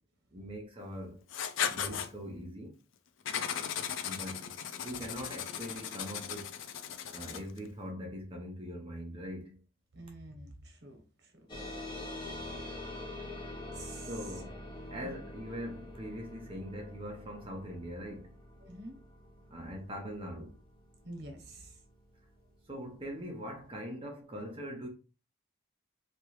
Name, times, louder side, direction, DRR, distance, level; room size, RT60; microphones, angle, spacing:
voice 1, 0.3-1.3 1.7-2.8 4.0-4.6 4.8-6.6 7.1-9.6 14.1-14.6 14.9-18.4 19.5-20.5 22.7-24.9, equal, 25° right, 0.6 m, -42 dB
Writing, 1.3-2.1 3.3-7.6, left 8 dB, 75° left, 0.4 m, -37 dB
voice 2, 9.9-12.0 12.6-13.1 13.7-14.4 15.0-15.1 18.6-19.0 21.0-21.8, right 2 dB, 55° right, 1.0 m, -49 dB
sound 1, 11.5-22.4, left 1 dB, 25° left, 0.7 m, -45 dB
3.0 x 2.3 x 3.1 m
head